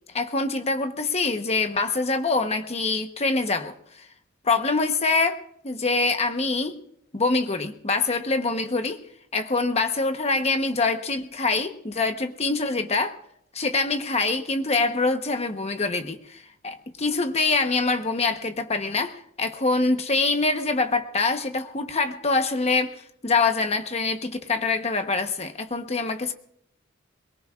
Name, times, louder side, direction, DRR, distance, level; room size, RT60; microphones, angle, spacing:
voice 1, 0.1-4.1 4.4-6.8 7.1-9.0 9.3-13.2 13.5-26.3, left 3 dB, 30° left, 7 dB, 1.0 m, -25 dB
23.0 x 22.5 x 2.5 m, 0.72 s
head